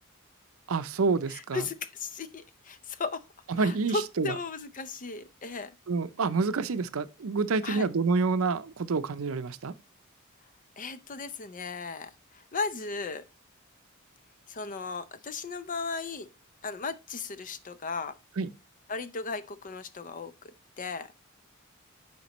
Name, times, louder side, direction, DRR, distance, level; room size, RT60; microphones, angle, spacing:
voice 1, 0.7-1.7 3.5-4.3 5.9-9.7 18.4-18.5, right 4 dB, 70° right, 0.5 m, -28 dB
voice 2, 1.3-3.2 3.6-5.7 7.6-7.9 10.8-13.2 14.5-16.3 16.6-18.1 18.9-20.3 20.8-21.1, left 4 dB, 40° left, 0.6 m, -36 dB
9.3 x 5.1 x 3.0 m
head